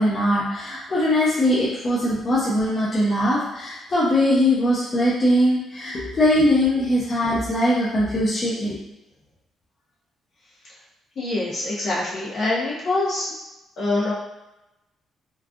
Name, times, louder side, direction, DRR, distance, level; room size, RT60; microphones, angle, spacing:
voice 1, 0.0-8.7, left 1 dB, 35° left, -8 dB, 0.7 m, -21 dB
voice 2, 11.2-13.3 13.8-14.1, left 2 dB, 60° left, -7 dB, 1.1 m, -24 dB
3.1 x 2.4 x 2.5 m, 0.95 s
cardioid pair, 90°, 0 cm